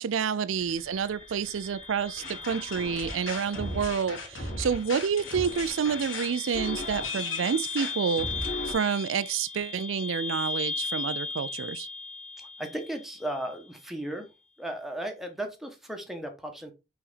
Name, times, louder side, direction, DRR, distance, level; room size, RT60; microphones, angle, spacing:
voice 1, 0.0-11.9, right 6 dB, 80° right, 0.4 m, -29 dB
sound 1, 0.5-13.5, left 4 dB, 30° right, 1.1 m, -38 dB
sound 2, 2.2-8.7, left 2 dB, 90° left, 2.6 m, -36 dB
voice 2, 12.4-14.3 14.6-16.7, right 1 dB, ahead, 1.1 m, -36 dB
5.6 x 4.2 x 4.0 m
head